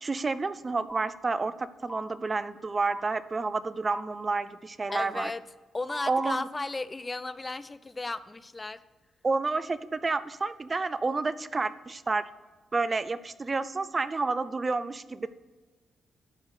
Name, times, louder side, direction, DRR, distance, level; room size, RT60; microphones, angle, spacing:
voice 1, 0.0-5.3 6.1-6.5 9.2-12.2 12.7-15.3, right 3 dB, 40° right, 14 dB, 0.5 m, -30 dB
sound 1, 0.9-1.0 1.9-2.0 2.9-3.0 3.9-4.0 4.9-5.0 5.9-6.4, equal, 15° right, 1.8 m, -38 dB
voice 2, 4.9-5.4 5.7-8.8, left 3 dB, 30° left, 15 dB, 0.5 m, -35 dB
12.5 x 4.8 x 6.5 m, 1.3 s
hypercardioid pair, 40°, 0 cm